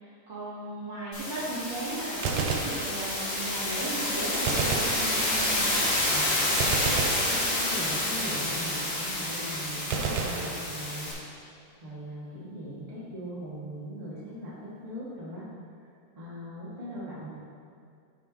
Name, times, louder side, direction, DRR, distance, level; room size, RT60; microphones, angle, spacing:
voice 1, 0.3-5.8, right 2 dB, 45° right, -10 dB, 2.3 m, -36 dB
sound 1, 1.1-11.1, left 1 dB, 85° left, 3.6 m, -29 dB
Gunshot gunfire, 2.1-3.5 4.4-5.7 6.6-8.0 9.9-11.2, right 5 dB, 80° right, 1.3 m, -32 dB
voice 2, 6.0-11.1 11.8-15.5 16.1-17.4, equal, 15° right, -10 dB, 1.8 m, -40 dB
12.0 x 6.0 x 3.1 m, 2.3 s
omnidirectional pair, 3.4 m